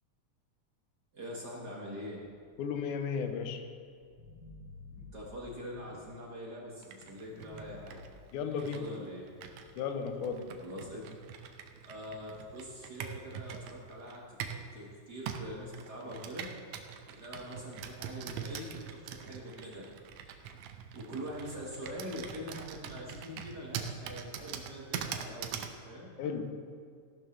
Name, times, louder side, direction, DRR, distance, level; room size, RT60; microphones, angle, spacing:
voice 1, 1.1-2.2 5.1-8.0 8.5-9.3 10.6-11.0 11.8-14.2 14.5-16.5 17.1-19.8 20.9-26.1, equal, 40° right, -4 dB, 1.8 m, -43 dB
sound 1, 2.4-6.5 7.0-8.0, left 2 dB, 35° left, 4.4 m, -54 dB
voice 2, 2.6-3.6 8.3-8.9 9.8-10.5 26.2-26.7, left 6 dB, 80° left, 7 dB, 2.3 m, -35 dB
Computer keyboard, 6.8-14.7 15.3-25.8, right 8 dB, 75° right, 1.9 m, -43 dB
14.5 x 12.0 x 3.3 m, 2.2 s
omnidirectional pair, 3.5 m